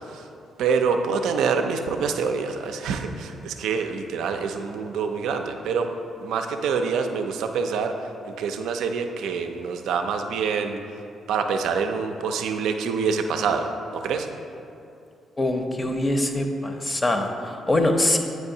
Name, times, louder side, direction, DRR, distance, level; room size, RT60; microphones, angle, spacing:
voice 1, 0.6-5.9 6.2-8.1 8.4-10.8 11.3-14.3, right 5 dB, 70° right, 6 dB, 0.4 m, -26 dB
voice 2, 15.4-18.2, left 1 dB, 30° left, 5 dB, 0.6 m, -23 dB
8.6 x 4.6 x 2.7 m, 2.6 s
hypercardioid pair, 45°, 0 cm